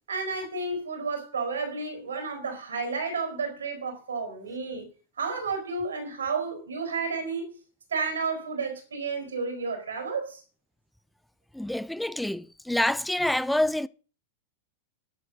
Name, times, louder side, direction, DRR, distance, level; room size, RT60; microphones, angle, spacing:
voice 1, 0.1-4.9 5.2-7.5 7.9-10.4, right 4 dB, 70° right, 4.5 m, -31 dB
voice 2, 11.5-13.9, left 1 dB, 5° left, 0.5 m, -27 dB
11.5 x 7.7 x 6.4 m
figure-of-eight pair, 90°, 0 cm